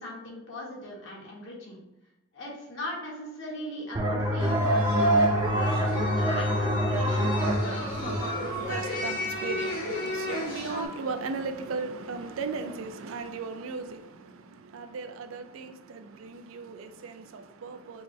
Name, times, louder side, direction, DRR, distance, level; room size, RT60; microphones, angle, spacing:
voice 1, 0.0-1.8 2.3-7.9, left 1 dB, 65° left, 1.2 m, -39 dB
sound 1, 3.9-9.3, equal, 20° right, 0.4 m, -28 dB
sound 2, 4.4-10.9, right 1 dB, 45° left, 1.1 m, -30 dB
voice 2, 7.6-18.0, right 4 dB, 90° right, 0.4 m, -37 dB
4.5 x 2.0 x 3.6 m
head